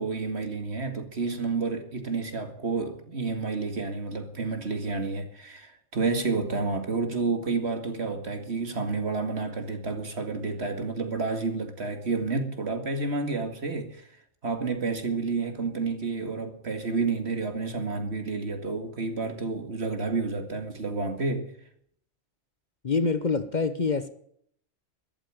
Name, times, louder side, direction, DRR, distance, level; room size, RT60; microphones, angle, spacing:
voice 1, 0.0-14.1 14.4-21.5, right 4 dB, 60° right, 2.4 m, -30 dB
voice 2, 22.8-24.1, left 4 dB, 40° left, 1.0 m, -26 dB
13.5 x 12.0 x 7.7 m
omnidirectional pair, 1.2 m